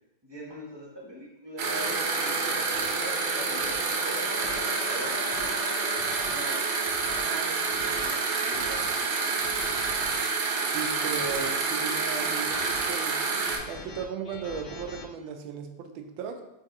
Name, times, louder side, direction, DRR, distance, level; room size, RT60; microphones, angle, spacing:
voice 1, 0.2-4.3 4.8-5.6 5.8-9.3, right 1 dB, 30° right, -5 dB, 0.4 m, -43 dB
sound 1, 1.0-1.2 1.8-2.0 2.7-2.9 3.6-3.8 4.4-4.6 5.1-5.5 6.0-6.3 6.8-7.2 7.7-8.1 8.5-8.9 9.4-10.2 10.8-11.5 12.2-12.9 13.3-15.1, left 3 dB, 70° left, 0.9 m, -44 dB
sound 2, 1.6-13.6, right 4 dB, 70° right, 1.1 m, -28 dB
sound 3, 1.7-8.6, left 4 dB, 90° left, 1.4 m, -41 dB
voice 2, 10.7-13.2 13.7-16.4, right 6 dB, 90° right, 5 dB, 1.4 m, -36 dB
4.7 x 3.6 x 2.9 m, 0.93 s
omnidirectional pair, 2.1 m